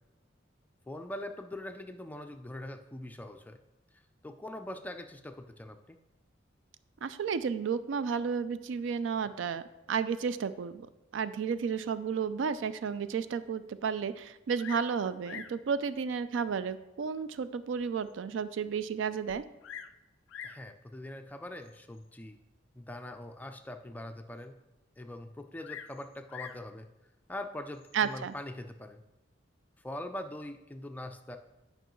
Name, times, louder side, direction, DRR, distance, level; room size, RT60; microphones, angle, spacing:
voice 1, 0.9-3.6 3.9-6.0 20.4-22.4 22.7-24.6 25.0-26.9 27.3-29.0 29.8-31.4, left 1 dB, 10° left, 6 dB, 0.4 m, -42 dB
voice 2, 7.0-9.6 9.9-10.9 11.1-19.4 27.9-28.3, right 6 dB, 75° right, 13 dB, 0.3 m, -32 dB
Bird vocalization bird call bird song, 14.6-14.9 15.2-15.6 16.5-16.6 17.2-17.3 17.8-17.9 18.1-18.2 19.3-20.0 20.3-20.7 21.6-22.0 25.6-26.7 27.7-28.2, left 8 dB, 85° left, 0.3 m, -45 dB
9.1 x 5.3 x 3.0 m, 0.97 s
head